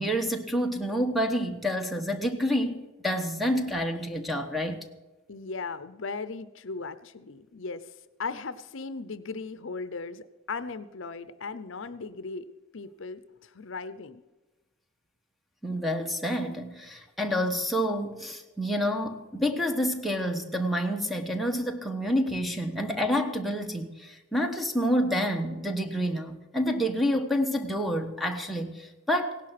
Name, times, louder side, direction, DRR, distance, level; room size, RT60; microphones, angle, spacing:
voice 1, 0.0-4.9 15.6-29.4, equal, ahead, 5 dB, 1.2 m, -28 dB
voice 2, 5.3-7.8 8.2-12.5 12.7-14.2, left 4 dB, 65° left, 13 dB, 0.7 m, -37 dB
17.0 x 11.5 x 5.9 m, 1.2 s
head